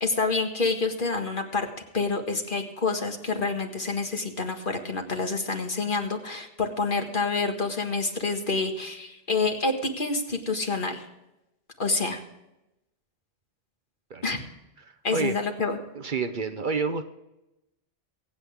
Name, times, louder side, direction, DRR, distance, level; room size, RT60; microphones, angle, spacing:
voice 1, 0.0-1.7 1.9-11.0 11.8-12.2 14.2-14.4 15.0-15.8, left 3 dB, 50° left, 4 dB, 2.0 m, -27 dB
voice 2, 15.9-17.0, right 5 dB, 55° right, 10 dB, 1.0 m, -28 dB
23.5 x 8.8 x 3.6 m, 0.92 s
omnidirectional pair, 1.1 m